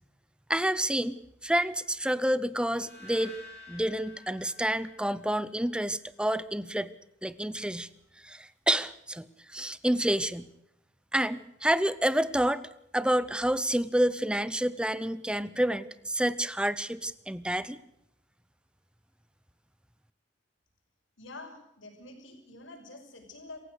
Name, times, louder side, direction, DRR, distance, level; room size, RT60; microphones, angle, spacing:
voice 1, 0.5-1.2 1.4-3.4 3.7-6.9 7.2-7.9 8.2-10.5 11.1-17.8, right 1 dB, 5° right, 16 dB, 0.8 m, -29 dB
sound 1, 2.6-5.8, left 3 dB, 40° right, 5.0 m, -51 dB
voice 2, 21.2-23.6, left 2 dB, 80° left, 4 dB, 6.0 m, -47 dB
26.5 x 16.0 x 6.6 m, 0.81 s
head